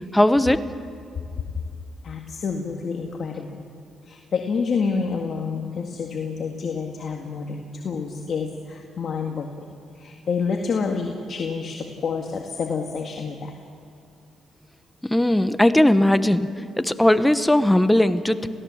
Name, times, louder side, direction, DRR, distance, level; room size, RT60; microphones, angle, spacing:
voice 1, 0.1-0.6 15.0-18.5, left 1 dB, 5° left, 11 dB, 1.0 m, -18 dB
voice 2, 2.0-3.7 4.0-9.5 9.9-13.5, left 5 dB, 55° left, 2 dB, 1.9 m, -28 dB
28.5 x 17.0 x 7.2 m, 2.5 s
cardioid pair, 90°, 0 cm